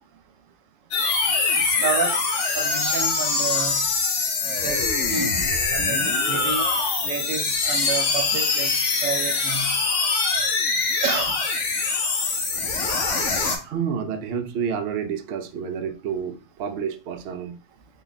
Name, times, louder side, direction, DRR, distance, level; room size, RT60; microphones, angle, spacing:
sound 1, 0.9-13.6, left 4 dB, 70° left, 1.1 m, -23 dB
voice 1, 1.6-2.2 2.5-3.8 4.6-5.3 5.7-6.7 7.0-8.7 9.0-9.8 11.0-11.4, right 6 dB, 85° right, 1.0 m, -30 dB
voice 2, 13.6-17.6, right 7 dB, 65° right, 0.7 m, -29 dB
3.7 x 2.3 x 3.9 m
omnidirectional pair, 1.3 m